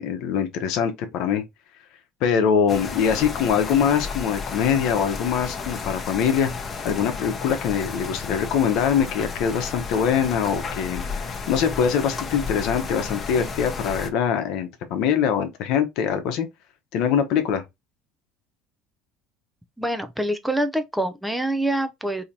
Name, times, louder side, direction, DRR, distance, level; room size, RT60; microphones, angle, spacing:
voice 1, 0.0-1.4 2.2-6.5 6.8-16.5 16.9-17.6, left 7 dB, 70° left, 0.8 m, -23 dB
sound 1, 2.7-14.1, left 4 dB, 30° left, 0.8 m, -32 dB
voice 2, 19.8-22.2, right 1 dB, 5° right, 0.5 m, -25 dB
3.9 x 2.8 x 2.8 m
supercardioid pair, 100°, 0 cm